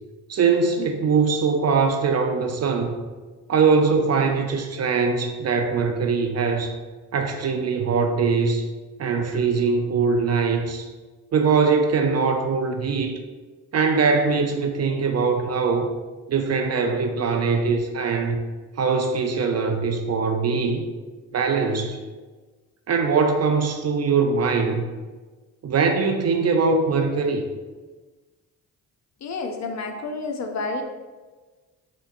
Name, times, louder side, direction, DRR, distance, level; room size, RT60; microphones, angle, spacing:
voice 1, 0.3-2.9 3.5-6.7 7.1-8.7 9.0-10.9 11.3-13.2 13.7-15.9 16.3-18.4 18.8-20.8 21.3-22.0 22.9-24.9 25.6-27.4, right 5 dB, 40° right, 4 dB, 0.4 m, -22 dB
voice 2, 29.2-30.8, left 3 dB, 45° left, 4 dB, 0.5 m, -29 dB
3.4 x 2.8 x 2.5 m, 1.3 s
supercardioid pair, 45°, 41 cm